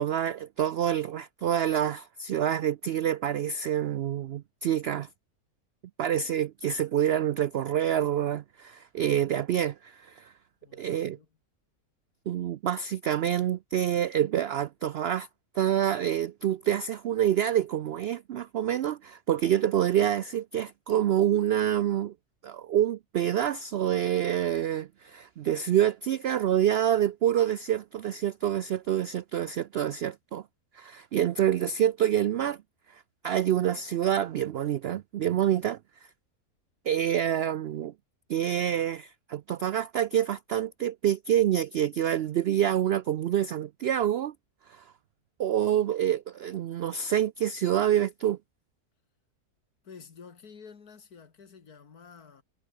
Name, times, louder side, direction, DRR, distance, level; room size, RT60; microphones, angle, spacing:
voice 1, 0.0-5.1 6.0-10.3 10.7-11.2 12.3-15.3 15.5-22.1 22.4-30.4 30.7-32.6 32.9-35.8 36.9-37.9 38.3-44.3 44.7-44.8 45.4-48.4, right 10 dB, 85° right, 0.5 m, -27 dB
voice 2, 10.6-11.3 49.8-52.4, left 6 dB, 75° left, 2.5 m, -50 dB
omnidirectional pair, 1.6 m